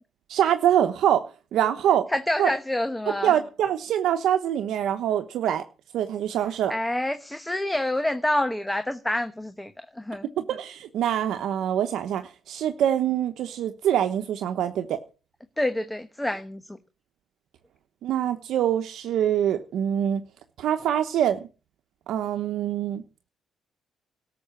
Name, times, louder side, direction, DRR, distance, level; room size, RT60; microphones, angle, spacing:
voice 1, 0.3-1.2 1.5-2.1 2.4-2.5 3.2-5.6 5.9-6.7 10.4-15.0 18.0-20.2 20.6-21.5 22.1-23.0, right 10 dB, 75° right, 7 dB, 1.0 m, -24 dB
voice 2, 2.1-3.3 6.7-10.3 15.6-16.8, left 1 dB, 10° left, 9 dB, 1.1 m, -27 dB
13.0 x 6.9 x 9.6 m, 0.35 s
cardioid pair, 90°, 0 cm